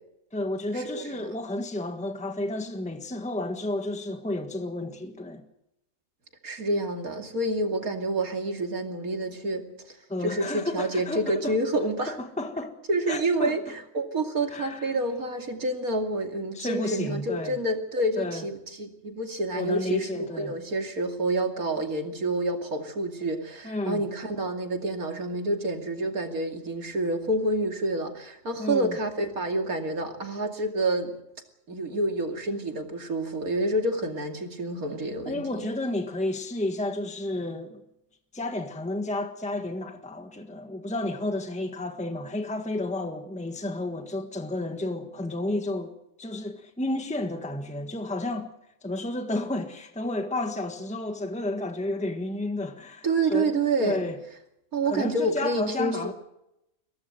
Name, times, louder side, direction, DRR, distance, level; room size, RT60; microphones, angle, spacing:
voice 1, 0.3-5.4 10.1-11.5 12.1-12.7 13.1-13.6 14.5-15.0 16.5-17.6 18.2-18.5 19.5-20.6 23.6-24.0 28.6-29.0 35.2-37.8 38.3-48.5 48.8-54.2 54.8-56.1, left 2 dB, 5° left, 1.5 m, -31 dB
voice 2, 6.4-10.0 10.2-12.2 12.9-13.6 13.9-31.2 31.7-35.7 53.0-54.0 54.7-56.1, right 2 dB, 75° right, 3.0 m, -28 dB
23.0 x 17.5 x 7.8 m
omnidirectional pair, 1.5 m